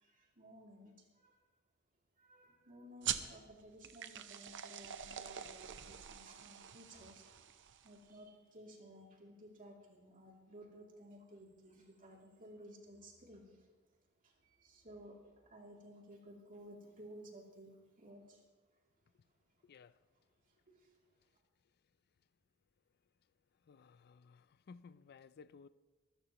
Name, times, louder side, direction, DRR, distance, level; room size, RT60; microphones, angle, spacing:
voice 1, 0.0-1.4 2.2-7.5 7.8-13.7 14.2-18.4 19.7-19.8 20.5-21.0, equal, 40° right, -1 dB, 2.9 m, -56 dB
sound 1, 3.0-8.1, right 9 dB, 60° right, 0.8 m, -44 dB
voice 2, 24.7-25.7, left 5 dB, 50° left, 16 dB, 0.4 m, -56 dB
24.0 x 13.5 x 3.0 m, 1.3 s
head